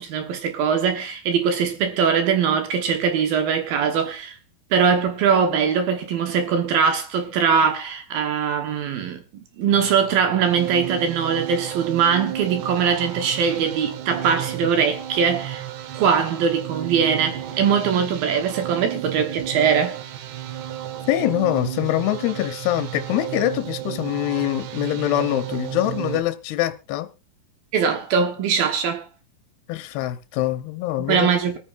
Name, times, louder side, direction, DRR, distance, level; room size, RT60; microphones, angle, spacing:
voice 1, 0.0-4.4 4.7-15.7 15.9-20.0 27.7-29.1 31.0-31.6, right 6 dB, 65° right, 2.8 m, -21 dB
sound 1, 9.7-26.2, right 11 dB, 85° right, 3.3 m, -33 dB
voice 2, 21.1-27.1 29.7-31.3, left 14 dB, 75° left, 2.8 m, -24 dB
25.5 x 9.3 x 2.5 m
omnidirectional pair, 4.8 m